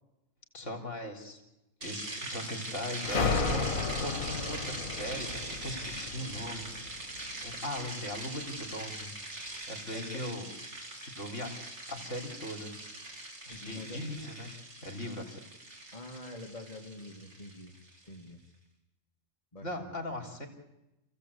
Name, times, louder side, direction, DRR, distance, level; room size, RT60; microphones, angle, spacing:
voice 1, 0.5-1.4 1.8-3.7 4.0-6.7 7.4-9.1 9.7-10.5 11.0-12.7 13.5-14.5 14.8-15.4 19.6-20.5, left 1 dB, 60° left, 3 dB, 3.8 m, -39 dB
sound 1, 1.8-18.1, right 2 dB, 55° right, 3.4 m, -42 dB
sound 2, 3.0-7.5, left 4 dB, 75° left, 2.0 m, -33 dB
voice 2, 9.9-10.2 11.3-11.4 13.5-14.0 15.9-17.8 18.0-18.4 19.5-20.0, left 1 dB, 25° left, 1 dB, 2.0 m, -46 dB
28.5 x 16.0 x 8.4 m, 0.97 s
omnidirectional pair, 1.4 m